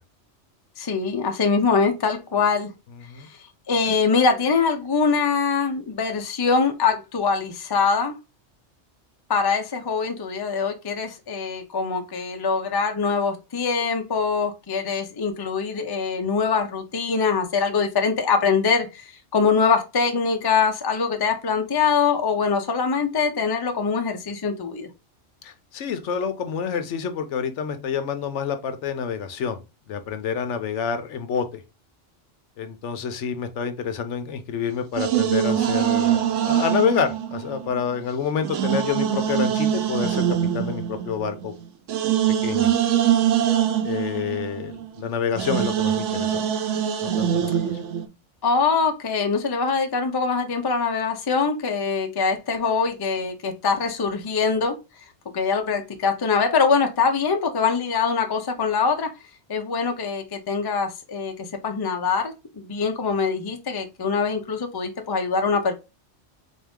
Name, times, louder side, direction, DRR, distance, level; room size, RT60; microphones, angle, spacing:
voice 1, 0.8-2.7 3.3-3.4 3.7-8.1 9.3-24.9 48.4-54.7 55.3-59.1 59.5-65.7, left 5 dB, 30° left, 0.4 m, -23 dB
voice 2, 25.4-29.6 29.9-31.6 32.6-40.2 40.5-41.5 42.4-42.7 43.8-46.4 47.0-47.6, left 7 dB, 75° left, 1.0 m, -28 dB
sound 1, 35.0-38.0 38.4-45.0 45.4-48.1, right 10 dB, 85° right, 0.9 m, -23 dB
3.7 x 2.7 x 3.5 m
omnidirectional pair, 1.2 m